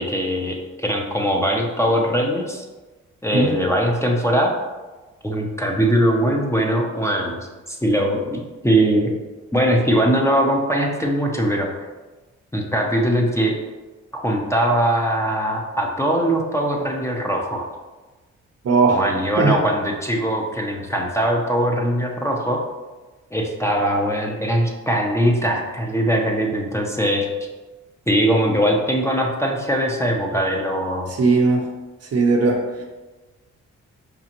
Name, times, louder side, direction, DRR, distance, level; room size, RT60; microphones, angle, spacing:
voice 1, 0.0-2.6 3.2-4.5 5.2-9.1 9.5-11.8 12.5-13.6 14.1-17.7 18.9-22.6 23.3-27.3 28.1-31.1, equal, 10° left, 0 dB, 0.7 m, -21 dB
voice 2, 18.6-19.0 19.4-19.6 31.1-31.6 32.1-32.6, right 3 dB, 50° right, 0 dB, 0.8 m, -17 dB
5.1 x 2.4 x 2.9 m, 1.2 s
supercardioid pair, 50°, 32 cm